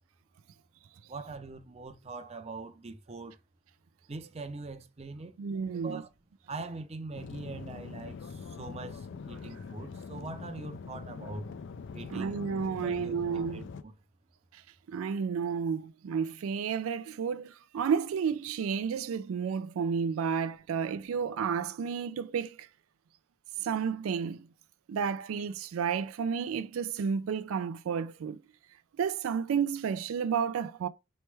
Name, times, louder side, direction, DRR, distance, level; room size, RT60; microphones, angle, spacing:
voice 1, 1.1-3.4 4.1-5.3 5.7-6.1 6.5-11.5 11.9-13.9, right 3 dB, 30° right, 0.5 m, -43 dB
voice 2, 5.4-6.0 12.1-13.7 14.9-22.5 23.6-24.4 24.9-28.4 29.0-30.9, right 6 dB, 90° right, 0.3 m, -31 dB
sound 1, 7.1-13.8, left 5 dB, 60° left, 0.4 m, -43 dB
4.3 x 3.2 x 3.2 m
head